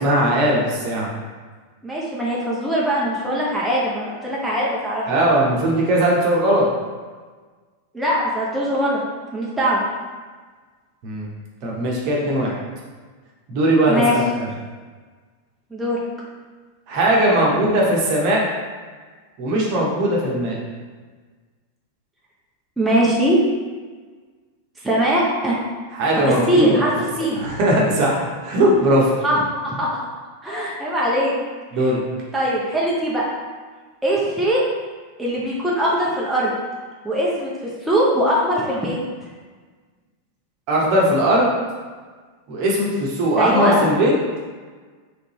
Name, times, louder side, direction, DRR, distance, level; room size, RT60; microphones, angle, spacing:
voice 1, 0.0-1.1 5.1-6.7 11.0-11.3 11.6-12.5 13.5-14.5 16.9-18.4 19.4-20.6 25.9-26.9 27.4-29.1 31.7-32.0 40.7-41.5 42.5-44.1, right 1 dB, 45° right, -3 dB, 0.9 m, -19 dB
voice 2, 1.8-5.0 7.9-9.0 9.3-9.8 13.9-14.1 15.7-16.0 17.4-17.5 22.8-23.4 24.8-25.6 26.3-26.9 27.2-27.4 29.2-30.1 30.4-31.3 31.8-31.9 32.3-33.2 34.0-34.6 35.2-36.5 37.0-37.5 37.8-39.0 43.4-43.8, equal, 5° right, -6 dB, 0.7 m, -21 dB
3.8 x 3.4 x 3.0 m, 1.4 s
figure-of-eight pair, 90°, 0 cm